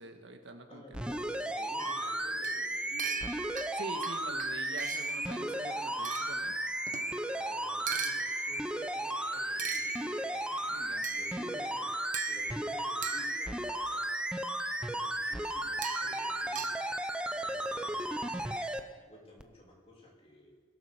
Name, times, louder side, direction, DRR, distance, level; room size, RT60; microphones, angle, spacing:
voice 1, 0.0-1.1 3.7-6.6 10.7-11.1, right 2 dB, 80° right, 6 dB, 1.5 m, -45 dB
voice 2, 0.7-3.2 7.4-10.7 11.1-12.0 12.3-14.1 14.7-18.6 19.0-20.5, left 1 dB, 35° left, -2 dB, 3.3 m, -53 dB
sound 1, 0.9-18.8 19.4-19.5, right 1 dB, 5° right, 0.7 m, -35 dB
sound 2, 1.8-5.2 6.1-7.1 7.9-8.8 9.6-10.5 11.0-11.6 12.1-13.8 15.8-16.8, right 7 dB, 45° right, 1.1 m, -40 dB
sound 3, 5.0-18.7, left 2 dB, 60° left, 4.6 m, -54 dB
21.5 x 7.9 x 6.7 m, 1.5 s
head